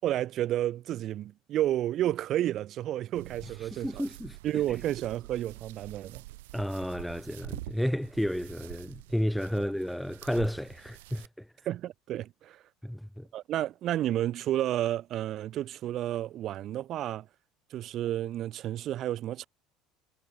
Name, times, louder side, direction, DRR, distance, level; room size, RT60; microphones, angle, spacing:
voice 1, 0.0-4.0 4.4-6.2 9.6-9.7 11.7-12.6 13.3-17.3 17.7-19.5, right 13 dB, 50° right, 6.2 m, -31 dB
sound 1, 3.2-11.3, right 20 dB, 85° right, 6.7 m, -46 dB
voice 2, 3.6-4.4 6.5-11.5 12.8-13.3, equal, ahead, 1.1 m, -32 dB
supercardioid pair, 95°, 0 cm